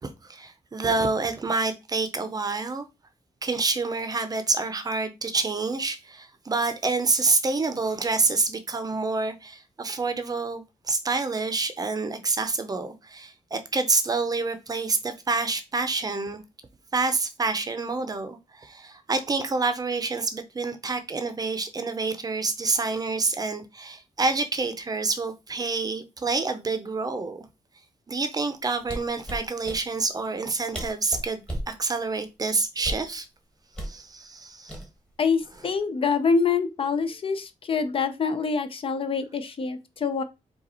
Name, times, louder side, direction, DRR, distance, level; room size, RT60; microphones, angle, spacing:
voice 1, 0.0-2.9 3.4-16.4 16.9-27.4 28.1-33.3 33.8-34.8, right 3 dB, 30° right, 0.6 m, -27 dB
sound 1, 28.8-29.8 30.5-30.6 30.7-31.7 32.8-33.1 33.7-34.0 34.7-35.2 35.5-35.8, right 1 dB, 5° left, 1.1 m, -34 dB
voice 2, 35.2-40.2, left 5 dB, 45° left, 0.5 m, -25 dB
5.1 x 2.4 x 4.2 m
wide cardioid pair, 165°, 13 cm